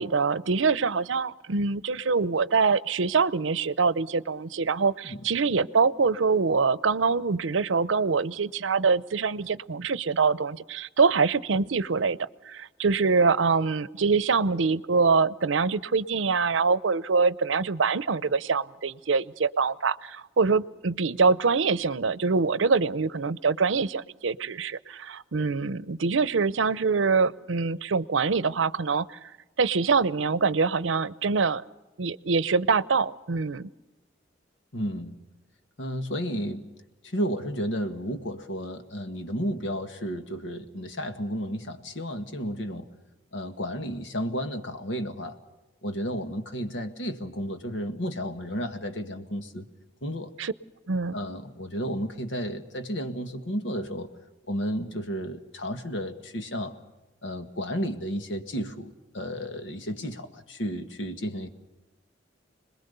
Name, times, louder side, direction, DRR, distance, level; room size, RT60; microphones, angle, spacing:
voice 1, 0.0-29.2 29.6-31.6 32.0-33.7 50.4-50.5 50.9-51.2, right 4 dB, 90° right, 18 dB, 0.7 m, -24 dB
voice 2, 34.7-35.2 35.8-36.7 37.0-42.9 43.3-45.4 45.8-49.7 50.0-50.3 51.1-54.1 54.5-56.8 57.2-61.5, equal, 75° left, 7 dB, 1.8 m, -32 dB
27.0 x 21.0 x 6.8 m, 1.1 s
head